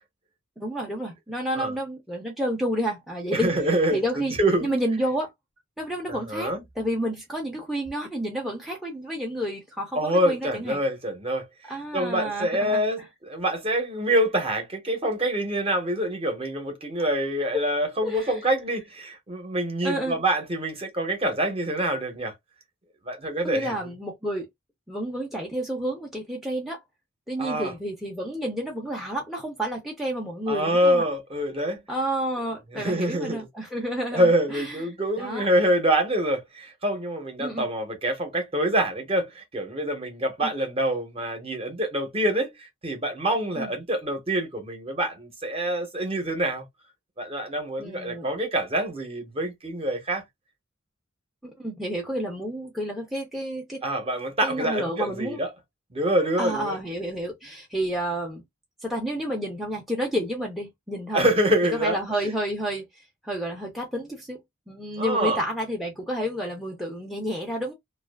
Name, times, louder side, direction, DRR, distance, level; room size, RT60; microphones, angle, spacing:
voice 1, 0.6-3.5 3.9-4.3 4.6-5.3 5.8-10.8 11.7-12.8 17.5-17.6 18.0-18.4 19.8-20.2 23.4-24.5 24.9-26.8 27.3-31.0 31.9-34.8 35.2-35.5 37.4-37.7 40.4-40.5 43.6-43.7 47.8-48.3 51.4-53.8 54.4-55.4 56.4-58.4 58.8-61.2 61.8-64.4 64.7-67.7, equal, ahead, 0.6 m, -30 dB
voice 2, 3.3-4.7 6.3-6.6 9.9-22.3 23.0-23.7 27.4-27.7 30.5-31.8 32.7-33.5 34.1-46.6 47.2-50.2 53.8-55.5 55.9-56.8 61.1-62.0 65.0-65.4, right 1 dB, 30° right, 0.8 m, -26 dB
2.4 x 2.4 x 2.3 m
head